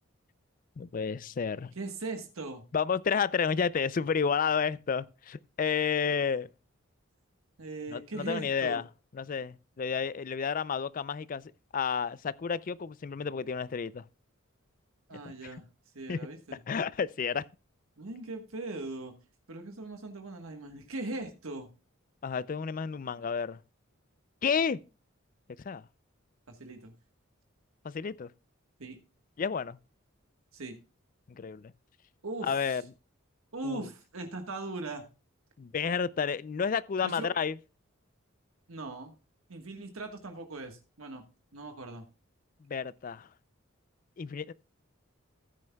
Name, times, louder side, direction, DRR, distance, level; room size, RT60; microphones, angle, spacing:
voice 1, 0.8-1.7 2.7-6.5 7.9-8.8 9.2-14.0 16.1-16.2 16.7-17.4 22.2-23.6 24.4-24.8 25.7-25.8 27.8-28.3 29.4-29.8 31.3-31.7 32.4-32.8 33.6-33.9 35.6-37.5 42.7-43.3 44.2-44.5, left 6 dB, 40° left, 0.4 m, -31 dB
voice 2, 1.7-2.6 7.6-8.8 15.1-15.6 15.9-16.6 18.0-19.1 19.5-21.7 26.5-26.9 28.8-29.0 30.5-30.8 32.2-32.8 33.5-35.0 37.0-37.3 38.7-39.1 39.5-41.2 41.5-42.1, right 2 dB, 85° right, 1.4 m, -39 dB
15.0 x 9.6 x 2.3 m
head